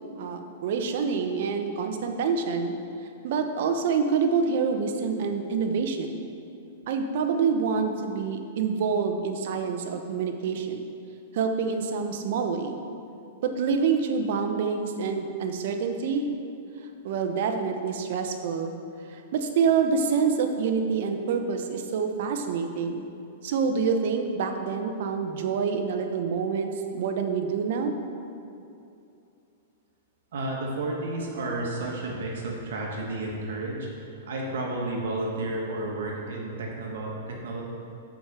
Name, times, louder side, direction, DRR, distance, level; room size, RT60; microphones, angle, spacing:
voice 1, 0.2-2.7 3.2-6.2 6.9-10.9 11.3-12.8 13.4-16.3 17.0-18.7 19.1-23.0 23.4-27.9, right 5 dB, 55° right, 5 dB, 0.8 m, -27 dB
voice 2, 30.3-37.6, right 2 dB, 75° right, -2 dB, 1.5 m, -32 dB
6.1 x 4.9 x 6.7 m, 2.6 s
hypercardioid pair, 150°, 0 cm